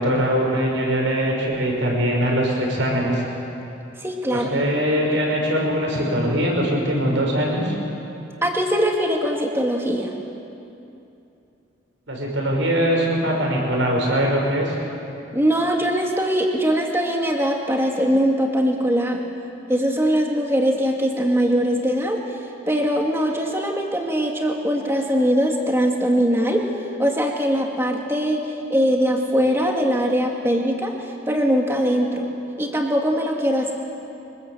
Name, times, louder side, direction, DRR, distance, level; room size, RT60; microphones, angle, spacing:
voice 1, 0.0-3.2 4.3-7.7 12.1-14.8, equal, 70° right, -1 dB, 6.3 m, -22 dB
voice 2, 4.0-4.5 8.4-10.1 15.3-19.2 19.7-22.2 22.7-26.7 27.0-28.4 28.7-30.9 31.3-32.3 32.6-33.7, equal, 10° right, 1 dB, 2.3 m, -21 dB
24.0 x 20.5 x 8.0 m, 2.8 s
head